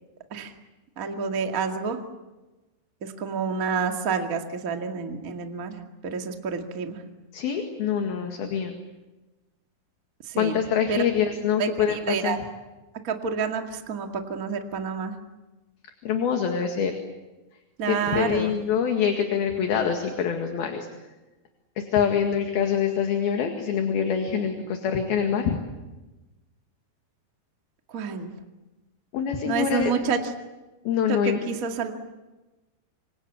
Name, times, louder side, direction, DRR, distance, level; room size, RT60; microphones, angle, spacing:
voice 1, 1.0-2.0 3.0-5.8 6.0-7.0 10.3-10.6 10.9-11.0 11.6-12.4 13.0-15.1 17.8-18.6 27.9-28.3 29.4-30.2 31.1-31.9, right 5 dB, 60° right, 4 dB, 0.8 m, -28 dB
voice 2, 7.3-8.7 10.4-12.4 16.0-16.9 17.9-20.9 21.8-25.6 29.1-29.9 30.9-31.4, left 7 dB, 60° left, 4 dB, 3.5 m, -25 dB
27.0 x 25.5 x 8.4 m, 1.1 s
omnidirectional pair, 5.5 m